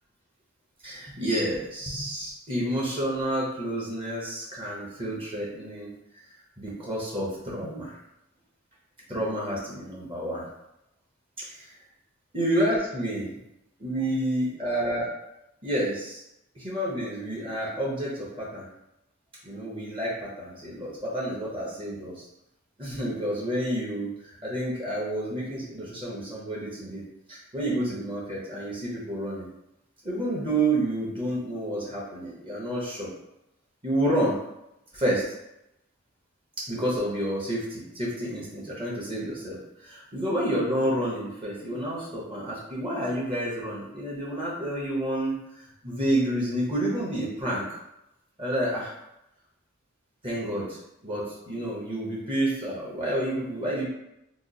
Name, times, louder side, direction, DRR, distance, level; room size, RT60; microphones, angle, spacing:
voice 1, 0.8-5.9 6.6-8.0 9.1-10.4 11.4-11.7 12.3-13.4 13.8-15.1 15.6-16.2 16.5-18.7 19.4-22.3 22.8-27.0 27.3-29.5 30.0-33.1 33.8-34.4 34.9-35.2 36.6-47.6 48.4-48.9 50.2-53.9, right 1 dB, 25° right, -5 dB, 0.8 m, -29 dB
2.9 x 2.3 x 3.8 m, 0.87 s
head